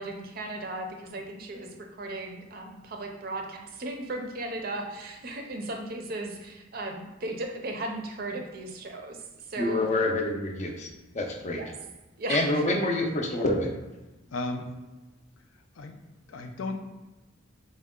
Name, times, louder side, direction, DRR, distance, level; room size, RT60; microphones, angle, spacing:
voice 1, 0.0-9.2 9.5-9.8 11.5-11.7 12.2-12.6, right 2 dB, 50° right, 3 dB, 0.5 m, -36 dB
voice 2, 9.6-11.6 12.3-13.7, left 1 dB, 35° left, 2 dB, 0.5 m, -27 dB
voice 3, 14.3-14.7 15.8-16.0 16.3-16.7, left 2 dB, 90° left, 4 dB, 0.5 m, -34 dB
4.5 x 2.2 x 3.6 m, 1.1 s
head